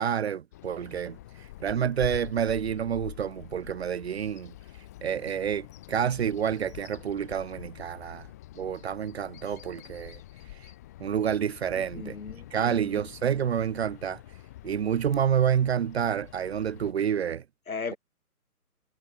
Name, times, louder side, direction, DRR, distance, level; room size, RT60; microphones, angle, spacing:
voice 1, 0.0-4.5 5.0-8.3 8.6-10.2 11.0-12.2 12.5-14.2 14.6-17.4, right 8 dB, 45° right, 2.4 m, -28 dB
Bird vocalization bird call bird song, 0.5-16.9, left 15 dB, 10° left, 0.7 m, -46 dB
voice 2, 11.7-13.0 17.7-18.0, left 5 dB, 65° left, 5.0 m, -38 dB
figure-of-eight pair, 140°, 45 cm